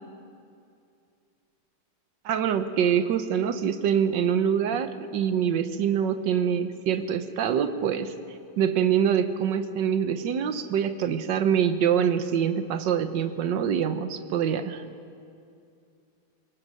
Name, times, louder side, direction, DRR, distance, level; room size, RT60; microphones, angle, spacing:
voice 1, 2.2-8.1 8.6-14.8, right 8 dB, 65° right, 10 dB, 1.5 m, -25 dB
22.0 x 18.5 x 6.4 m, 2.5 s
omnidirectional pair, 2.3 m